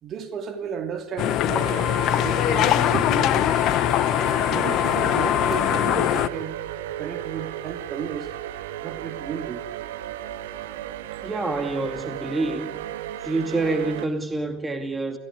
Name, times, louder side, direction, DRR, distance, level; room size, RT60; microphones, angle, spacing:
voice 1, 0.0-3.7 4.3-6.6 7.0-8.3 8.8-9.6, right 7 dB, 40° right, 2.9 m, -33 dB
sound 1, 1.2-6.3, left 12 dB, 45° left, 0.9 m, -22 dB
sound 2, 1.5-14.0, right 12 dB, 65° right, 1.7 m, -35 dB
voice 2, 11.2-12.8 13.2-15.2, right 2 dB, 15° right, 2.5 m, -27 dB
28.5 x 16.0 x 9.6 m
figure-of-eight pair, 70°, 0 cm